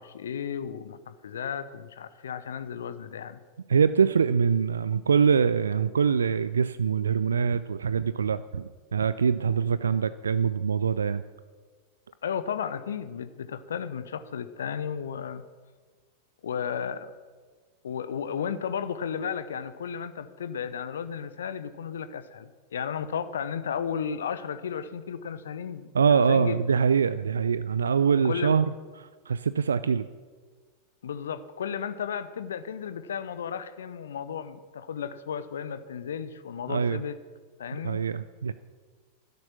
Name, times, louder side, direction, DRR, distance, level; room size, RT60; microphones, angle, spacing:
voice 1, 0.0-3.4 12.2-15.4 16.4-17.1 17.8-26.7 28.2-28.5 31.0-37.2 37.6-38.0, left 7 dB, 65° left, 14 dB, 0.8 m, -34 dB
voice 2, 3.7-11.2 25.9-28.6 29.0-30.1 36.7-37.0 37.7-38.5, right 6 dB, 70° right, 14 dB, 0.4 m, -24 dB
12.5 x 10.5 x 7.2 m, 1.5 s
figure-of-eight pair, 90°, 0 cm